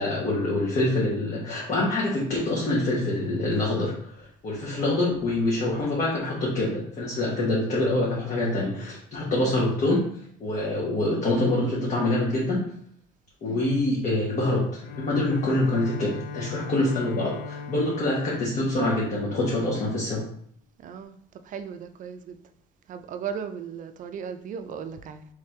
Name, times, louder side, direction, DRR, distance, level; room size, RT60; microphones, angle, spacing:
voice 1, 0.0-10.1 10.4-12.7 13.4-20.2, left 2 dB, 45° left, -4 dB, 1.0 m, -25 dB
Bowed string instrument, 14.8-19.9, left 5 dB, 85° left, 0.4 m, -39 dB
voice 2, 20.8-21.2 21.5-22.4 22.9-25.3, right 7 dB, 50° right, 8 dB, 0.4 m, -36 dB
3.3 x 3.2 x 3.2 m, 0.64 s
cardioid pair, 110°, 17 cm